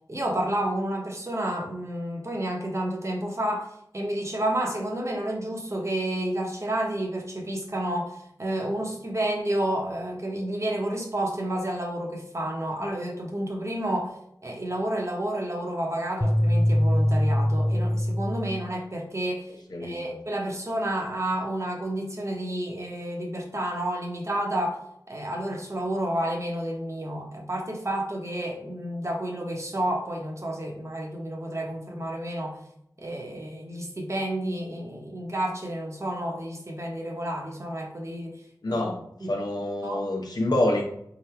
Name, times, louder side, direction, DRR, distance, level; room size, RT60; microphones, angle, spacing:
voice 1, 0.1-14.1 14.4-19.5 19.8-24.8 25.1-32.6 33.0-38.4 38.7-38.8 39.2-39.4 39.8-40.1, right 1 dB, 40° right, 0 dB, 1.1 m, -30 dB
sound 1, 16.2-18.7, left 1 dB, 10° left, 0.3 m, -23 dB
voice 2, 38.6-40.8, left 1 dB, 65° left, 1 dB, 0.9 m, -27 dB
3.9 x 2.4 x 4.3 m, 0.74 s
wide cardioid pair, 50°, 7 cm